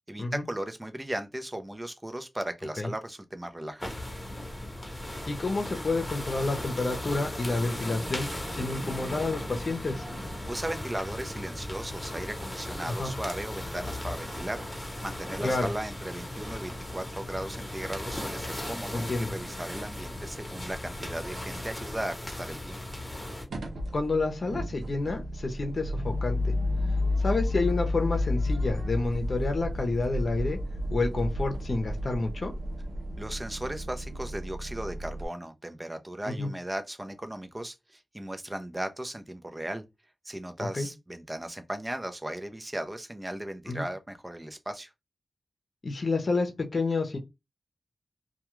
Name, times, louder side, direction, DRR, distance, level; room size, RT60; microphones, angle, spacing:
voice 1, 0.1-4.0 10.5-22.8 33.2-39.8 40.2-44.9, right 1 dB, 20° right, 0.5 m, -37 dB
sound 1, 3.8-23.4, left 1 dB, 15° left, 1.0 m, -37 dB
voice 2, 5.3-10.0 12.9-13.1 15.4-15.7 18.9-19.3 23.9-26.5 27.2-30.6 30.9-32.5 36.3-36.5 40.6-40.9 43.7-43.8 45.8-47.2, left 3 dB, 60° left, 0.7 m, -29 dB
sound 2, 23.5-35.3, left 1 dB, 90° right, 0.5 m, -31 dB
2.3 x 2.3 x 3.0 m
cardioid pair, 45°, 0 cm